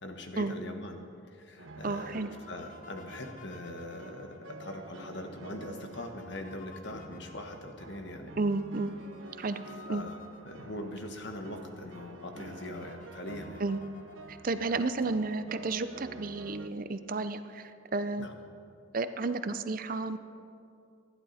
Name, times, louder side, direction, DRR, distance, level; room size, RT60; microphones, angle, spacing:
voice 1, 0.0-1.0 1.3-2.2 2.5-8.4 9.9-10.2 10.4-13.6 14.7-14.8 18.2-18.3, left 1 dB, 60° left, 4 dB, 1.5 m, -41 dB
sound 1, 1.6-16.7, right 3 dB, 75° right, 0.8 m, -50 dB
sound 2, 1.8-11.1 11.6-11.7 11.9-14.7, left 3 dB, 40° left, 0.9 m, -55 dB
voice 2, 1.8-2.3 8.4-8.9 9.4-9.6 9.9-10.0 13.6-13.8 14.3-18.3 18.9-20.2, right 3 dB, 45° right, 11 dB, 0.6 m, -32 dB
24.5 x 11.0 x 4.3 m, 2.5 s
head